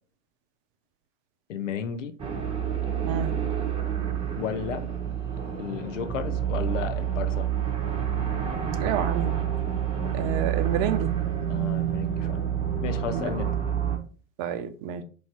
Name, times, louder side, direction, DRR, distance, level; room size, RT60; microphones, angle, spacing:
voice 1, 1.5-2.1 4.4-4.9 5.6-7.5 11.5-12.4 12.8-13.6, left 7 dB, 70° left, 0.7 m, -33 dB
sound 1, 2.2-14.0, right 9 dB, 15° right, 1.0 m, -28 dB
voice 2, 8.8-9.4 10.1-11.1 13.1-13.3 14.4-15.0, right 8 dB, 45° right, 0.6 m, -29 dB
3.1 x 2.8 x 4.4 m
figure-of-eight pair, 90°, 39 cm